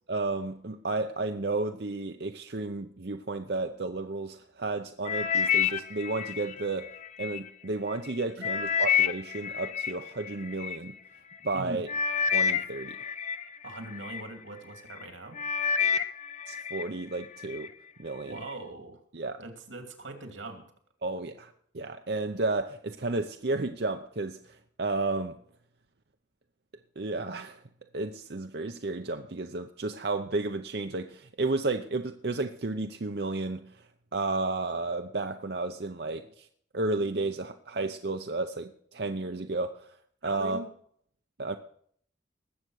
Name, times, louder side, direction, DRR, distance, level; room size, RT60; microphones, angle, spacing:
voice 1, 0.1-6.9 7.2-10.9 11.4-11.9 12.3-13.0 16.5-17.7 18.0-18.3 19.1-19.4 21.0-25.4 27.0-27.6 27.9-33.8 34.1-36.5 36.7-40.0 40.2-40.6 41.4-41.6, right 3 dB, 55° right, 0.7 m, -32 dB
sound 1, 5.1-7.4 7.9-10.8 11.5-11.6 11.9-14.3 14.8-15.1 15.4-16.9 17.2-17.7 18.3-18.4, left 7 dB, 40° left, 0.7 m, -29 dB
voice 2, 13.6-15.4 18.2-19.0 19.4-20.6 40.2-40.7, right 2 dB, 85° right, 2.6 m, -41 dB
20.0 x 8.0 x 6.4 m
head